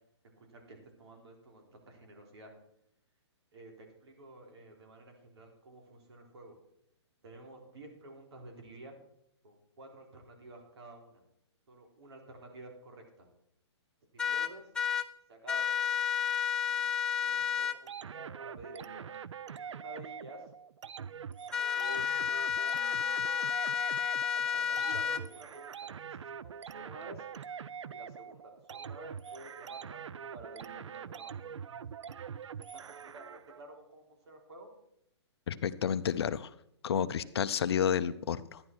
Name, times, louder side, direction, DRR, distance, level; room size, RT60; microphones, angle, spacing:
voice 1, 0.4-2.5 3.5-6.6 7.2-9.0 9.4-11.2 11.7-13.3 14.2-14.7 15.3-16.0 16.7-16.9 17.2-19.1 19.6-20.4 21.8-22.8 23.2-23.3 24.5-27.2 27.9-31.5 32.7-34.7, right 1 dB, 65° right, 2 dB, 4.0 m, -51 dB
sound 1, 14.2-15.1 15.5-17.8 21.5-25.2, left 8 dB, 5° left, 0.4 m, -31 dB
sound 2, 17.9-33.6, right 7 dB, 85° right, 0.5 m, -44 dB
voice 2, 35.5-36.5 36.8-38.6, left 8 dB, 60° left, 14 dB, 0.7 m, -30 dB
13.0 x 10.5 x 4.6 m, 0.75 s
hypercardioid pair, 155°, 15 cm